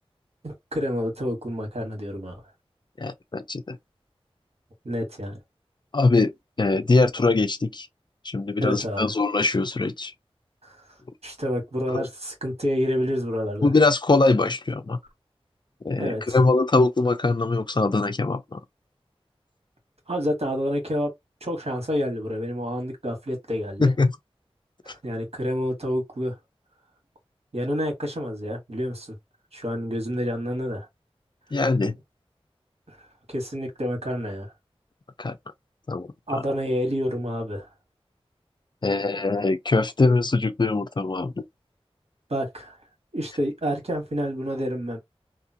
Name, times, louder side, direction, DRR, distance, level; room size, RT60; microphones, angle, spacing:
voice 1, 0.4-2.4 4.8-5.4 8.6-9.1 10.6-10.8 11.2-13.7 15.9-16.4 20.1-21.1 21.4-23.9 24.8-26.4 27.5-29.2 29.5-30.9 32.9-33.0 33.3-34.5 36.3-37.7 42.3-42.8 43.1-45.0, equal, 70° right, 1.6 m, -28 dB
voice 2, 3.0-3.8 5.9-7.9 8.2-10.1 11.9-12.1 13.6-15.0 15.8-18.6 23.8-24.1 24.9-25.0 31.5-32.0 35.2-35.4 35.9-36.4 38.8-41.4, left 3 dB, 45° left, 0.5 m, -22 dB
2.8 x 2.4 x 2.8 m
wide cardioid pair, 45°, 11 cm